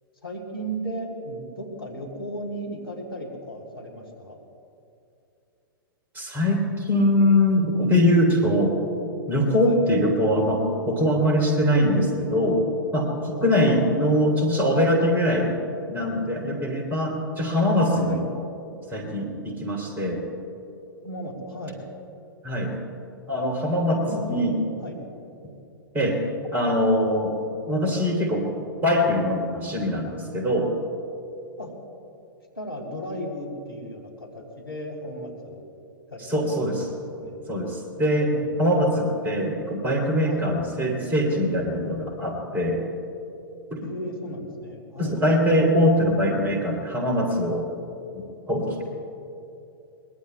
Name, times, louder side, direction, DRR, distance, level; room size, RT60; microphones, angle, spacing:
voice 1, 0.2-4.4 8.5-8.7 9.6-9.8 13.3-13.9 18.0-18.2 21.0-21.8 23.9-24.5 24.8-25.0 29.7-29.9 31.6-31.7 32.5-35.6 36.1-37.4 38.1-38.9 40.2-40.5 43.8-45.2, equal, 85° left, 0 dB, 3.2 m, -36 dB
voice 2, 6.1-8.8 9.3-12.6 12.9-15.6 15.9-18.2 18.9-20.2 22.4-22.7 23.3-24.0 24.3-24.5 25.9-26.2 26.5-27.4 27.7-28.5 28.8-30.7 36.3-36.8 37.5-38.3 38.6-42.8 43.7-43.8 45.0-47.7 48.1-48.2 48.5-48.8, equal, 15° right, 0 dB, 3.0 m, -22 dB
23.0 x 21.0 x 2.3 m, 2.7 s
figure-of-eight pair, 110°, 12 cm